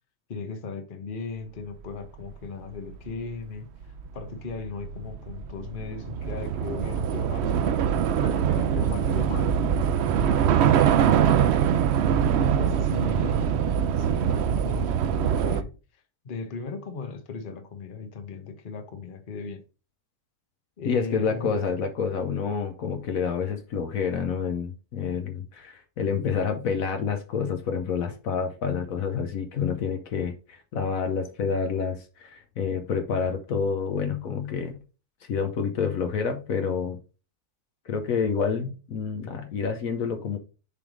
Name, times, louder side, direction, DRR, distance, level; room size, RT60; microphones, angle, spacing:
voice 1, 0.3-3.7 4.1-7.9 8.2-10.8 12.4-13.6 14.0-15.7 16.2-19.6 20.8-21.6, left 5 dB, 40° left, 1.0 m, -37 dB
Train / Subway metro underground, 2.3-2.4 2.6-15.6, right 8 dB, 70° right, 0.6 m, -23 dB
voice 2, 20.9-34.8 35.3-37.0 37.9-40.4, left 6 dB, 70° left, 1.2 m, -28 dB
6.9 x 3.5 x 5.0 m
omnidirectional pair, 1.6 m